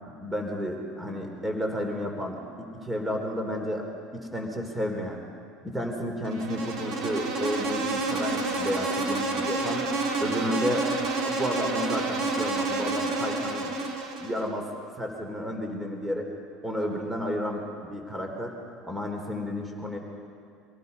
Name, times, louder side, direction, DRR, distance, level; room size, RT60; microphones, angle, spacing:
voice 1, 0.1-2.4 2.7-3.9 4.1-5.2 5.6-9.9 10.2-13.8 14.2-14.7 15.0-16.3 16.6-18.6 18.9-20.0, equal, 10° right, 2 dB, 3.5 m, -32 dB
Insect, 6.2-14.5, right 3 dB, 55° right, 3.3 m, -29 dB
25.5 x 18.5 x 5.5 m, 2.3 s
hypercardioid pair, 85°, 0 cm